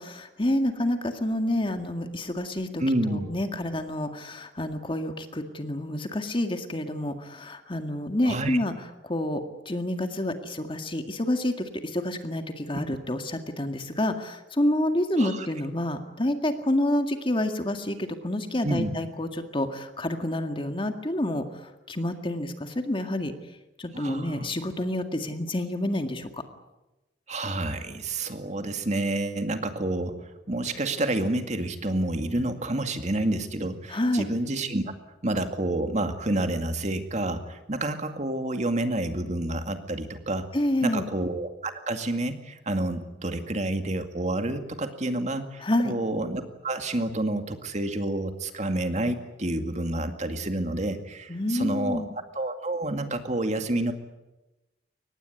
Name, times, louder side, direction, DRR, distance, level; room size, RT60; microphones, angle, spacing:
voice 1, 0.0-8.7 9.0-21.4 21.9-23.3 23.8-26.4 33.9-34.2 40.5-41.1 45.6-46.0 51.3-52.1, left 1 dB, 30° left, 6 dB, 2.0 m, -28 dB
voice 2, 2.8-3.3 8.2-8.6 15.2-15.5 18.6-18.9 23.9-24.5 27.3-34.8 35.2-40.5 40.8-52.0 52.3-53.9, right 1 dB, 40° right, 7 dB, 2.2 m, -29 dB
24.0 x 19.5 x 9.7 m, 1.0 s
head